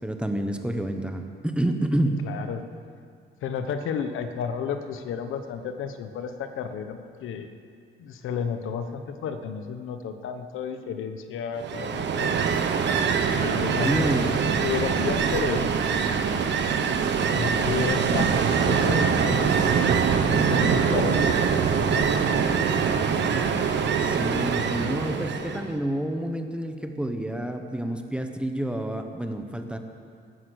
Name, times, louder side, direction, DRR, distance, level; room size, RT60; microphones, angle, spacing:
voice 1, 0.0-2.2 13.8-14.4 24.0-29.8, right 1 dB, 5° right, 5 dB, 1.3 m, -28 dB
voice 2, 2.1-2.7 3.4-7.5 8.0-12.4 13.3-16.0 17.3-19.9 20.3-22.2, left 7 dB, 80° left, 8 dB, 1.1 m, -32 dB
Ocean, 11.6-25.7, right 6 dB, 60° right, 1.3 m, -23 dB
16.0 x 13.0 x 6.5 m, 2.3 s
cardioid pair, 115°, 20 cm